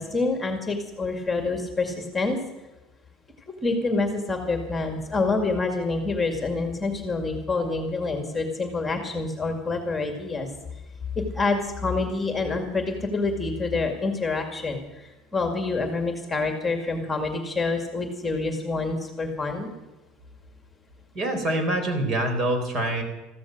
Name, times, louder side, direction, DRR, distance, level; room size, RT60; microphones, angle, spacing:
voice 1, 0.0-2.4 3.6-10.5 11.3-19.7, left 3 dB, 15° left, 4 dB, 2.3 m, -27 dB
voice 2, 21.1-23.0, right 1 dB, 40° right, 6 dB, 4.0 m, -25 dB
14.5 x 13.0 x 6.6 m, 1.1 s
supercardioid pair, 120°, 0 cm